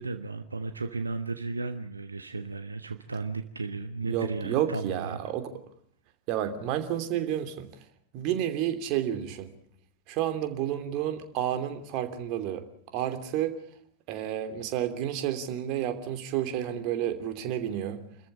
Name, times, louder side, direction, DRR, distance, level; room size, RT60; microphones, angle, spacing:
voice 1, 0.0-5.2, right 3 dB, 80° right, 8 dB, 1.3 m, -34 dB
voice 2, 4.0-5.5 6.3-7.7 8.1-9.5 10.1-12.7 12.9-13.6 14.1-18.0, right 11 dB, 40° right, 8 dB, 2.9 m, -30 dB
28.5 x 14.5 x 8.6 m, 0.67 s
figure-of-eight pair, 90°, 0 cm